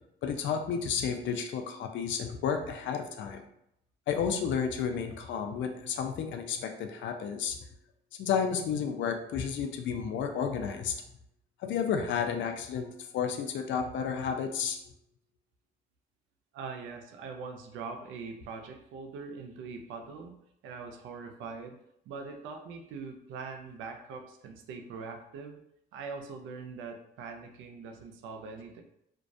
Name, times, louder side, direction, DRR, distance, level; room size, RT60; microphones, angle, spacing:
voice 1, 0.2-3.4 4.1-7.6 8.2-11.0 11.6-14.8, left 7 dB, 70° left, 6 dB, 0.4 m, -32 dB
voice 2, 16.5-20.3 20.6-21.8 22.1-25.6 25.9-28.8, right 4 dB, 85° right, 4 dB, 0.4 m, -42 dB
2.2 x 2.1 x 2.5 m, 0.76 s
cardioid pair, 90°, 20 cm